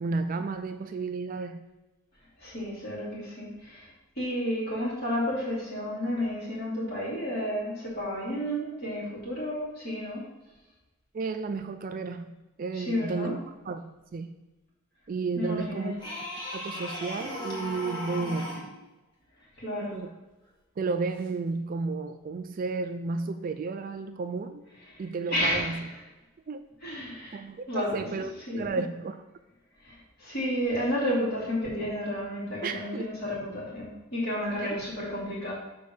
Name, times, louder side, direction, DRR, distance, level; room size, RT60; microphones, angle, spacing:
voice 1, 0.0-1.6 11.1-12.3 12.6-14.3 15.1-15.9 16.5-18.5 19.9-20.1 20.8-24.6 25.0-25.9 26.5-26.6 27.3-29.2 32.6-33.1 34.6-34.7, right 4 dB, 45° right, 9 dB, 0.3 m, -32 dB
voice 2, 2.4-3.9 4.2-10.2 12.7-13.3 15.4-15.9 19.6-20.0 24.9-25.0 25.3-25.9 26.8-27.4 27.7-28.8 29.8-35.5, equal, 50° left, -7 dB, 2.8 m, -31 dB
sound 1, 16.0-18.7 21.2-21.3, left 1 dB, 20° left, 2.1 m, -37 dB
7.0 x 4.3 x 6.5 m, 1.1 s
head